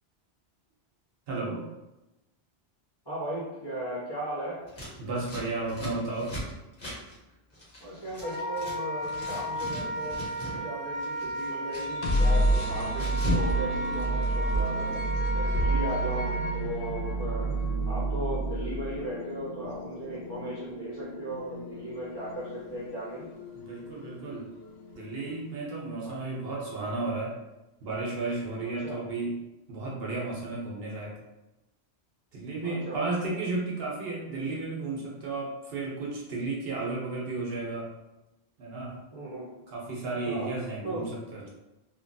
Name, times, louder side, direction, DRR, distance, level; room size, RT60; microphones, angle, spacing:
voice 1, 1.3-1.6 5.0-6.3 23.5-24.5 24.9-27.4 27.8-29.4 29.7-31.2 32.3-37.9 38.6-39.0 39.7-41.5, right 3 dB, 70° right, -4 dB, 0.9 m, -33 dB
voice 2, 3.0-4.6 7.8-17.5 17.9-23.3 26.0-26.2 28.6-29.0 32.6-33.0 39.1-39.5 40.2-40.5 40.8-41.1, right 1 dB, 25° left, -9 dB, 0.9 m, -37 dB
Scissors, 4.7-8.8 9.0-10.6 10.9-13.5 13.8-14.7, left 1 dB, 50° left, 1.0 m, -38 dB
Wind instrument woodwind instrument, 8.2-16.6, right 1 dB, 35° right, 1.0 m, -34 dB
sound 1, 11.7-25.6, right 2 dB, 80° left, 0.8 m, -31 dB
2.9 x 2.2 x 2.6 m, 0.98 s
omnidirectional pair, 1.1 m